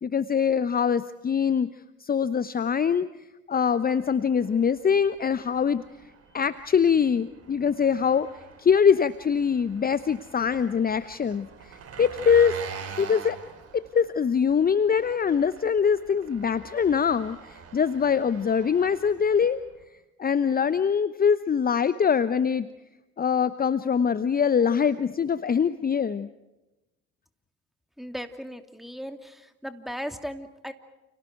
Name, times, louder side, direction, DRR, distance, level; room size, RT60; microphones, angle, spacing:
voice 1, 0.0-1.7 2.0-3.1 3.5-5.8 6.3-8.3 8.6-12.6 13.0-13.4 13.7-19.6 20.2-22.7 23.2-26.3, left 7 dB, 25° left, 14 dB, 1.0 m, -23 dB
Engine, 4.0-19.8, right 6 dB, 45° right, 3.4 m, -45 dB
voice 2, 28.0-30.7, equal, ahead, 7 dB, 2.9 m, -37 dB
30.0 x 29.5 x 4.6 m, 1.0 s
hypercardioid pair, 55°, 33 cm